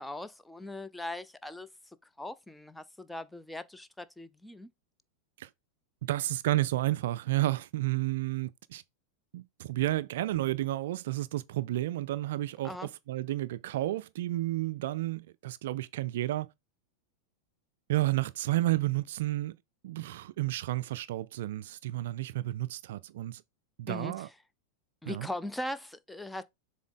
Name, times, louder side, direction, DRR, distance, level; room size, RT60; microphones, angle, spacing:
voice 1, 0.0-1.7 2.2-4.7 12.6-12.9 23.9-24.3 25.0-26.4, left 1 dB, 5° left, 0.6 m, -40 dB
voice 2, 6.0-8.8 9.3-12.8 13.1-16.5 17.9-19.6 19.8-23.4 23.8-24.3 25.1-25.3, right 16 dB, 55° right, 0.3 m, -31 dB
7.1 x 3.8 x 3.7 m
figure-of-eight pair, 90°, 0 cm